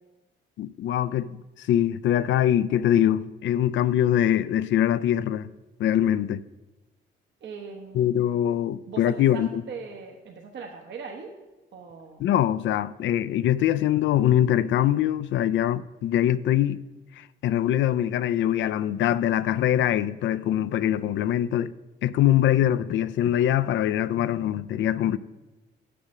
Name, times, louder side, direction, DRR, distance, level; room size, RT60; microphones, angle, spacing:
voice 1, 0.6-5.5 5.8-6.4 7.9-9.6 12.2-16.8 17.2-21.7 22.0-25.2, left 11 dB, 70° left, 0.4 m, -23 dB
voice 2, 7.4-8.1 8.9-11.3 11.7-12.2, right 5 dB, 65° right, 1.1 m, -40 dB
6.7 x 6.3 x 7.3 m
cardioid pair, 90°, 20 cm